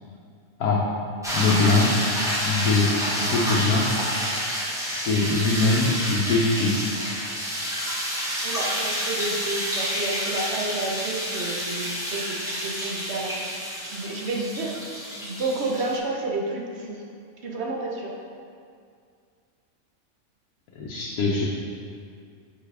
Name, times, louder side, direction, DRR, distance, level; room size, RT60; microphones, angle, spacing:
sound 1, 1.2-16.0, equal, 5° right, 0.7 m, -29 dB
voice 1, 1.3-1.9 2.4-2.9 3.2-3.9 4.8-6.9 20.8-21.4, left 3 dB, 90° left, -4 dB, 1.2 m, -22 dB
voice 2, 8.4-13.6 13.9-14.8 15.2-17.0 17.4-18.1, right 2 dB, 55° right, -1 dB, 1.0 m, -30 dB
6.9 x 5.0 x 3.3 m, 2.3 s
omnidirectional pair, 1.5 m